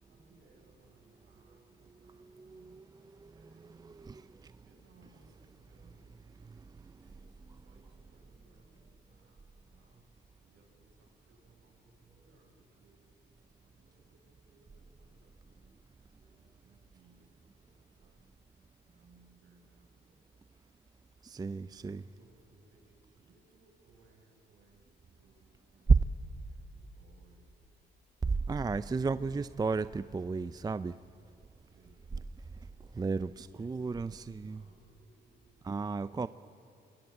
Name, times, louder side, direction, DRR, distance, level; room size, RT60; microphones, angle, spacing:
voice 1, 0.1-4.0 4.6-6.2 7.0-10.1 10.4-13.0 13.6-15.8 16.2-18.3 18.8-20.3 21.7-25.9 26.4-27.7 31.7-32.1 33.5-36.3, right 3 dB, 70° right, 6.6 m, -65 dB
voice 2, 2.3-3.3 3.8-4.5 6.6-7.1 21.2-22.0 25.9-26.0 28.2-31.0 32.9-34.6 35.6-36.3, right 4 dB, 20° right, 0.5 m, -32 dB
24.0 x 22.0 x 8.9 m
cardioid pair, 90°, 20 cm